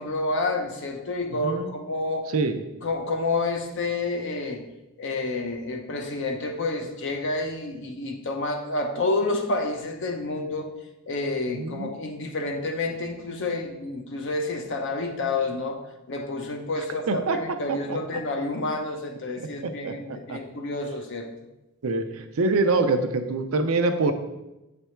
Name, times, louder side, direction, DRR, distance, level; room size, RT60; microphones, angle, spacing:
voice 1, 0.0-2.3 2.8-4.6 5.0-10.7 11.1-15.8 16.1-21.3, left 2 dB, 55° left, 3 dB, 0.7 m, -29 dB
voice 2, 11.5-11.9 17.1-17.4 17.7-18.0 19.6-20.4 21.8-24.1, right 3 dB, 65° right, 7 dB, 0.5 m, -25 dB
7.0 x 3.4 x 4.4 m, 0.97 s
head